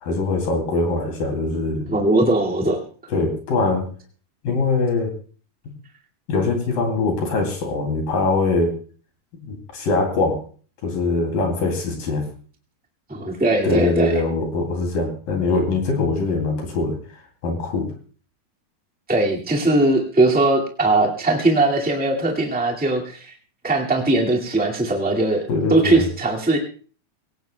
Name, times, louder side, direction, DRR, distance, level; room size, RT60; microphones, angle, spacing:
voice 1, 0.0-2.0 3.1-3.9 4.4-5.1 6.3-8.8 9.4-10.4 10.8-12.3 13.6-17.0 17.4-17.9 25.5-26.1, left 3 dB, 60° left, 2 dB, 4.4 m, -22 dB
voice 2, 1.9-2.8 13.1-14.1 19.1-23.3 23.6-25.4 25.7-26.6, right 2 dB, 5° right, -2 dB, 0.7 m, -20 dB
24.0 x 17.0 x 2.3 m, 0.40 s
omnidirectional pair, 4.6 m